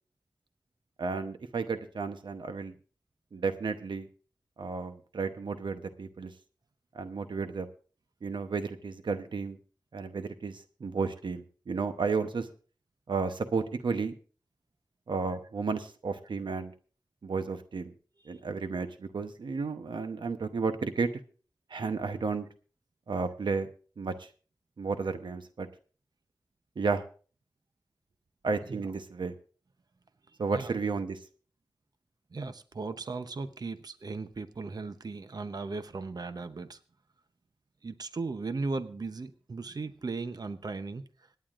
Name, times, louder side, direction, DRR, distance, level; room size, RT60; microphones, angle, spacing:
voice 1, 1.0-2.7 3.3-4.1 4.6-6.3 6.9-7.7 8.2-9.6 9.9-12.5 13.1-14.1 15.1-16.7 17.2-17.8 18.3-21.1 21.7-22.5 23.1-23.7 24.0-24.3 24.8-25.7 26.8-27.0 28.4-29.3 30.4-31.2, right 4 dB, 85° right, 8 dB, 0.9 m, -32 dB
voice 2, 32.3-36.8 37.8-41.0, right 3 dB, 55° right, 10 dB, 0.8 m, -37 dB
26.5 x 9.4 x 2.5 m, 0.39 s
wide cardioid pair, 85°, 8 cm